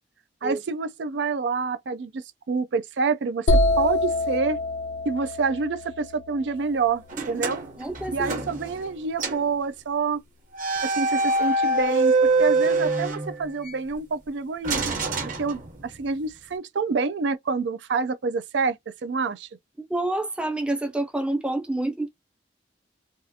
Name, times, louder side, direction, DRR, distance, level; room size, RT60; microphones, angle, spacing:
voice 1, 0.4-3.5 3.8-4.6 5.1-7.6 8.1-10.2 10.8-15.0 15.4-19.5, right 4 dB, 80° right, 0.4 m, -27 dB
sound 1, 3.5-7.3, left 1 dB, 65° left, 0.5 m, -25 dB
sound 2, 7.1-8.9 9.2-9.5 10.5-13.8 14.6-16.1, right 3 dB, 45° right, 0.9 m, -25 dB
voice 2, 7.8-8.3 19.9-22.1, right 2 dB, 5° right, 0.4 m, -27 dB
3.4 x 2.4 x 2.7 m
head